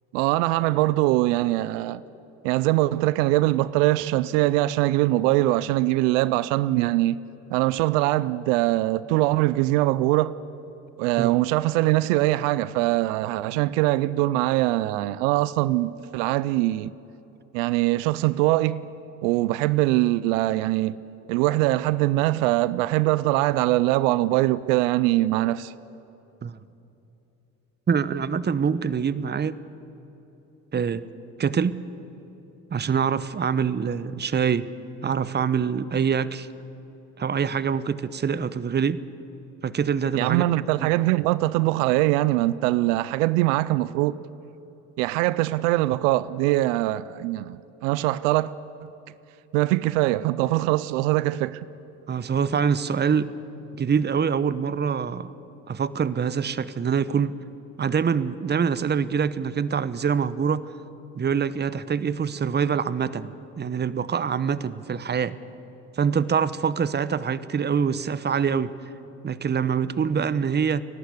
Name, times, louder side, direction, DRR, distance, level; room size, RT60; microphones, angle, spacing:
voice 1, 0.1-2.0 2.4-7.2 7.5-10.3 11.0-16.9 17.5-18.9 19.2-20.9 21.3-25.7 40.1-44.2 45.0-48.5 49.5-51.6, right 17 dB, 85° right, 0.5 m, -22 dB
voice 2, 27.9-29.6 30.7-31.1 31.4-31.8 32.7-34.7 35.0-36.5 37.2-39.0 39.6-40.4 40.8-40.9 52.1-53.3 53.8-55.3 55.7-57.3 57.8-60.7 61.1-65.4 66.0-68.7 69.2-70.8, right 6 dB, 25° right, 0.9 m, -25 dB
29.5 x 12.0 x 8.3 m
supercardioid pair, 70°, 37 cm